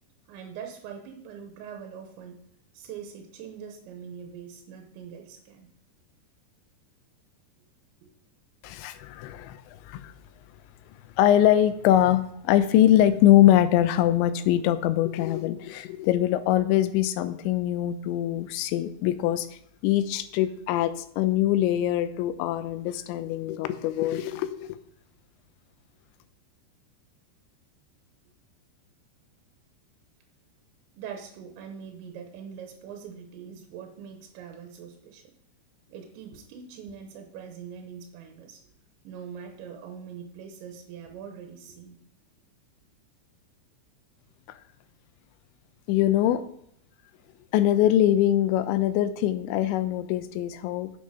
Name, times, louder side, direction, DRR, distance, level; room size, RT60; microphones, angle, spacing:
voice 1, 0.3-2.4 2.7-5.7 8.0-8.1 9.4-9.5 31.0-35.3 35.9-38.7 39.0-42.0, right 7 dB, 90° right, 4 dB, 3.2 m, -42 dB
voice 2, 8.6-10.1 11.2-19.5 19.8-24.8 45.9-46.4 47.5-50.9, left 12 dB, 85° left, 12 dB, 3.0 m, -23 dB
7.8 x 6.4 x 5.5 m, 0.70 s
omnidirectional pair, 5.1 m